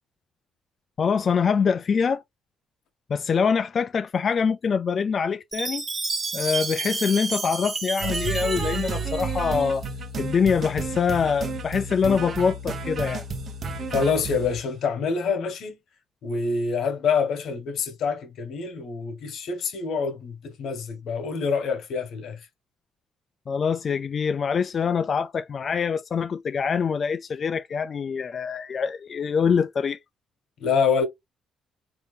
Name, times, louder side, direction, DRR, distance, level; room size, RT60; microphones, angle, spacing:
voice 1, 1.0-2.2 3.1-5.8 6.3-9.8 10.2-13.2 23.5-30.0, left 6 dB, 45° left, 0.3 m, -24 dB
Chime, 5.5-9.6, right 3 dB, 35° right, 1.1 m, -31 dB
sound 1, 8.0-14.6, right 4 dB, 50° right, 0.8 m, -31 dB
voice 2, 13.9-15.8 16.2-22.4 30.6-31.0, left 5 dB, 75° left, 1.2 m, -26 dB
3.8 x 2.8 x 3.2 m
cardioid pair, 90°, 0 cm